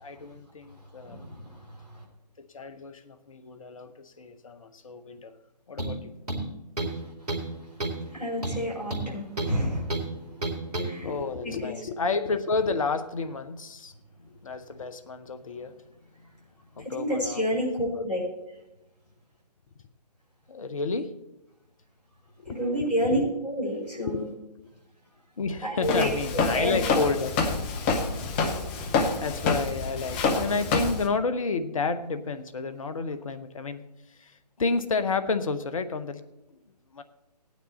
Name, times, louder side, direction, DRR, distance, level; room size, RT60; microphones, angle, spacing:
voice 1, 0.0-1.2 2.5-5.4 5.7-6.1 6.8-6.9 10.9-13.9 14.2-15.8 16.8-17.6 17.9-18.0 20.5-21.1 22.4-23.3 24.0-24.3 24.6-24.7 25.4-27.6 29.2-33.8 34.1-36.2 36.9-37.0, left 4 dB, 55° left, 10 dB, 0.9 m, -31 dB
voice 2, 1.0-2.0 8.1-10.0 10.3-10.4 10.8-11.1 11.4-11.8 16.8-18.2 22.5-24.3 25.6-26.1 26.3-26.8, equal, 75° left, -4 dB, 5.7 m, -29 dB
sound 1, 5.8-6.0 6.3-7.0 7.3-7.5 7.8-8.0 8.4-9.6 9.9-10.1 10.4-10.9, right 2 dB, 65° right, 2.4 m, -30 dB
Walk footsteps, 25.8-31.1, left 4 dB, 20° left, 0.8 m, -27 dB
16.0 x 9.4 x 4.2 m, 0.96 s
figure-of-eight pair, 135°, 21 cm